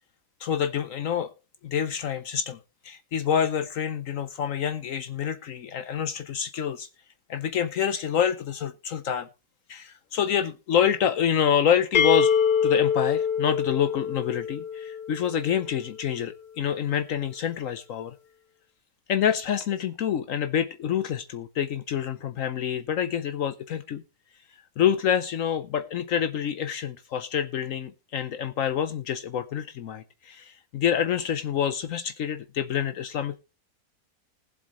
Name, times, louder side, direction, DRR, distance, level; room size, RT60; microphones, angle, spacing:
voice 1, 0.4-1.3 1.6-2.6 2.8-6.9 7.3-9.3 9.7-12.3 12.6-18.1 19.1-24.0 24.8-33.4, left 8 dB, 65° left, 11 dB, 1.0 m, -27 dB
sound 1, 11.9-15.7, left 7 dB, 50° left, 0.6 m, -25 dB
19.5 x 7.6 x 3.0 m, 0.29 s
omnidirectional pair, 1.6 m